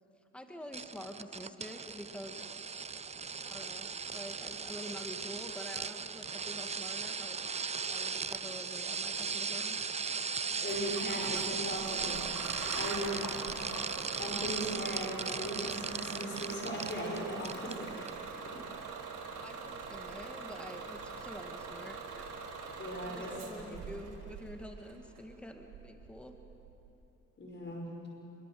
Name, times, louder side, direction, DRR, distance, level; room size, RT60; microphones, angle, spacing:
voice 1, 0.3-2.4 3.5-7.4 7.9-9.8 10.5-10.8 18.7-19.0 19.4-22.3 23.0-26.4, equal, 5° left, 4 dB, 1.9 m, -47 dB
sound 1, 0.7-17.2 17.5-17.8 18.1-18.2, right 5 dB, 20° right, 0.6 m, -37 dB
voice 2, 10.6-12.3 12.7-13.2 14.2-18.0 18.5-18.6 22.8-23.6 27.4-27.9, equal, 40° left, -1 dB, 5.5 m, -38 dB
Bus / Engine starting, 10.7-26.9, right 5 dB, 90° right, 3.8 m, -44 dB
Engine / Trickle dribble / Fill (with liquid), 11.2-18.6 19.0-20.0 20.2-20.3 22.3-22.4 22.5-22.9 23.2-23.3 23.6-23.7, left 3 dB, 75° left, 3.8 m, -51 dB
25.5 x 23.0 x 7.8 m, 2.9 s
cardioid pair, 90°, 30 cm